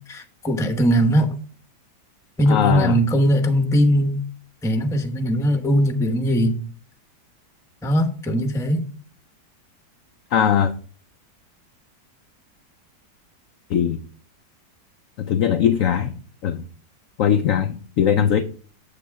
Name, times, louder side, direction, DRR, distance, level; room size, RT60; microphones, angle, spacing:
voice 1, 0.1-1.3 2.4-4.2 4.6-6.5 7.8-8.8, equal, 5° left, 0.6 m, -20 dB
voice 2, 2.5-3.0 10.3-10.7 13.7-14.0 15.2-16.1 16.4-16.6 17.2-18.4, left 8 dB, 70° left, 0.8 m, -20 dB
8.2 x 7.1 x 3.5 m
omnidirectional pair, 1.9 m